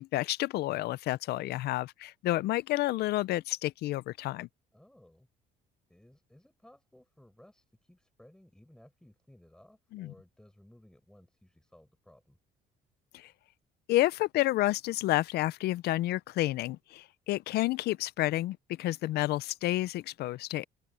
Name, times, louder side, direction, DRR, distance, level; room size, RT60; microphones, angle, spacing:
voice 1, 0.0-4.5 9.9-10.1 13.1-13.3 13.9-20.7, left 16 dB, 70° left, 0.5 m, -30 dB
voice 2, 4.7-5.3 5.9-12.4, left 1 dB, 5° left, 7.4 m, -59 dB
open air
cardioid pair, 110°, 17 cm